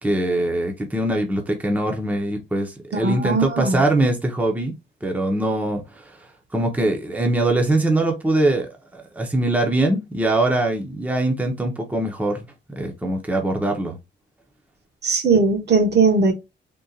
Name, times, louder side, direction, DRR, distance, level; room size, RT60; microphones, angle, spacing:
voice 1, 0.0-4.7 5.0-6.1 6.5-12.5 12.8-14.0, right 2 dB, 10° right, 0.7 m, -22 dB
voice 2, 2.9-3.8 15.0-16.3, right 4 dB, 60° right, 1.1 m, -19 dB
3.7 x 2.4 x 2.7 m
wide cardioid pair, 135°, 20 cm